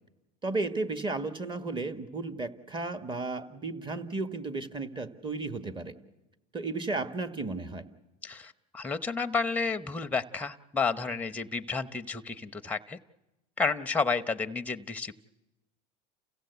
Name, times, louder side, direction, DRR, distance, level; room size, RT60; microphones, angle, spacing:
voice 1, 0.4-5.9 6.5-7.8, right 3 dB, 25° right, 10 dB, 1.6 m, -34 dB
voice 2, 8.2-13.0 13.6-15.1, left 4 dB, 5° left, 10 dB, 0.8 m, -31 dB
29.5 x 15.5 x 8.1 m, 1.0 s
supercardioid pair, 110°, 20 cm